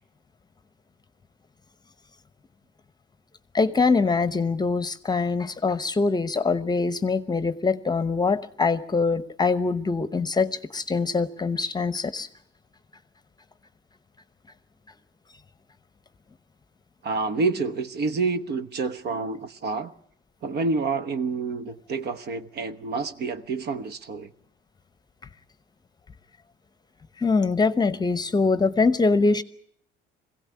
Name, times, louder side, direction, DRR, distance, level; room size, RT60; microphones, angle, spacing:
voice 1, 3.5-12.3 27.2-29.4, left 4 dB, 20° left, 0.9 m, -23 dB
voice 2, 17.0-19.9 20.4-24.3, right 4 dB, 50° right, 1.1 m, -28 dB
22.0 x 16.5 x 9.5 m
cardioid pair, 120°, 21 cm